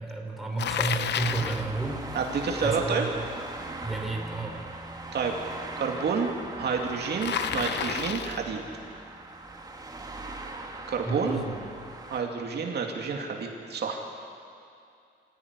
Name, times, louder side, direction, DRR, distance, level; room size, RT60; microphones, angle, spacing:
voice 1, 0.0-2.3 2.6-3.1 3.8-4.6 11.1-11.7, right 3 dB, ahead, -1 dB, 3.8 m, -31 dB
Bicycle, 0.6-1.7 7.2-8.5, left 9 dB, 70° left, 0.8 m, -30 dB
sound 1, 1.2-12.2, right 2 dB, 20° right, 1.9 m, -40 dB
voice 2, 2.1-3.0 5.1-5.3 5.8-6.3 6.6-8.6 10.9-11.4 12.1-14.0, right 5 dB, 60° right, 1 dB, 2.5 m, -29 dB
25.0 x 16.0 x 9.8 m, 2.4 s
wide cardioid pair, 155°, 19 cm